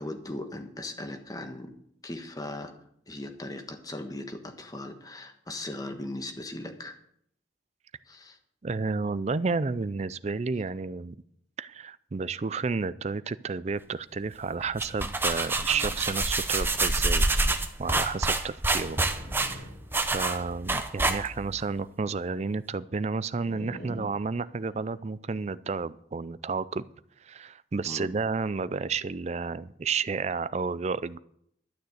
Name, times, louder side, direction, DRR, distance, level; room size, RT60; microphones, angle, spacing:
voice 1, 0.0-1.7 2.0-2.8 3.1-7.0 8.0-8.4 27.8-28.1, left 1 dB, 20° left, 6 dB, 1.3 m, -38 dB
voice 2, 8.6-11.2 11.6-17.3 17.8-19.0 19.3-19.7 20.1-26.8 27.2-31.2, right 4 dB, 40° right, 17 dB, 0.4 m, -31 dB
sound 1, 14.6-21.6, right 2 dB, 10° right, 0.8 m, -27 dB
sound 2, 15.6-16.0 17.1-17.6 18.6-19.0 19.9-20.3, left 1 dB, 35° left, 3.6 m, -52 dB
sound 3, 18.7-20.6 23.4-25.0, equal, 55° left, 6.3 m, -45 dB
12.0 x 6.6 x 7.8 m, 0.69 s
head